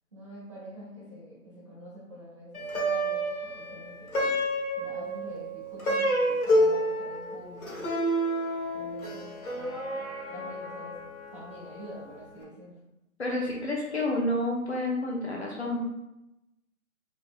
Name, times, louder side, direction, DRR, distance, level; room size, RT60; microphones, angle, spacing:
voice 1, 0.1-4.4 4.8-7.9 8.7-11.0 11.3-12.7, equal, 20° right, -8 dB, 0.9 m, -46 dB
Plucked string instrument, 2.5-12.0, equal, 75° left, 1.3 m, -29 dB
voice 2, 13.2-15.8, left 1 dB, 50° left, -1 dB, 0.9 m, -29 dB
3.9 x 3.5 x 2.4 m, 0.92 s
figure-of-eight pair, 160°, 43 cm